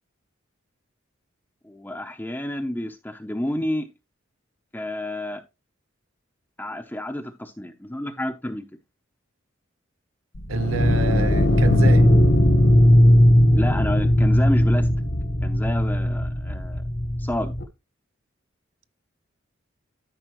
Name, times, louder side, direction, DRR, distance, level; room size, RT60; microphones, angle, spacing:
voice 1, 1.6-3.9 4.7-5.4 6.6-8.6 13.5-14.9 15.4-16.8 17.2-17.5, left 1 dB, 10° left, 0.7 m, -30 dB
sound 1, 10.4-17.6, left 1 dB, 55° left, 1.3 m, -18 dB
voice 2, 10.5-12.1, right 4 dB, 90° right, 0.6 m, -26 dB
12.5 x 5.5 x 3.1 m
head